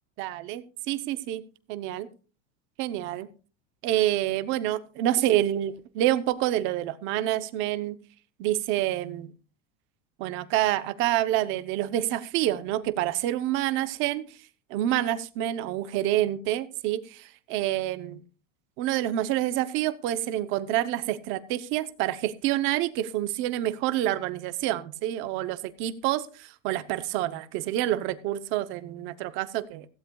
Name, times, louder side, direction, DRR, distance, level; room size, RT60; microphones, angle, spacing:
voice 1, 0.2-1.4 1.7-2.1 2.8-3.3 3.8-8.0 8.4-9.3 10.2-14.3 14.7-18.2 18.8-29.9, right 13 dB, 30° right, 12 dB, 0.7 m, -27 dB
16.5 x 15.5 x 2.3 m, 0.37 s
supercardioid pair, 175°, 37 cm